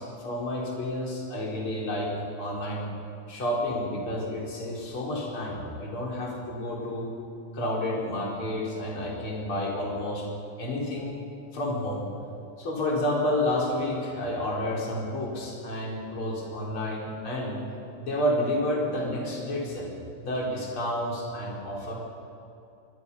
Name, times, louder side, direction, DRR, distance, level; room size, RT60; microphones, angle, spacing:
voice 1, 0.0-2.8 3.3-7.1 7.5-10.2 10.6-11.2 11.5-12.0 12.6-17.6 18.0-19.9 20.2-21.9, left 1 dB, 30° left, -3 dB, 4.9 m, -30 dB
26.0 x 22.0 x 5.7 m, 2.7 s
omnidirectional pair, 5.4 m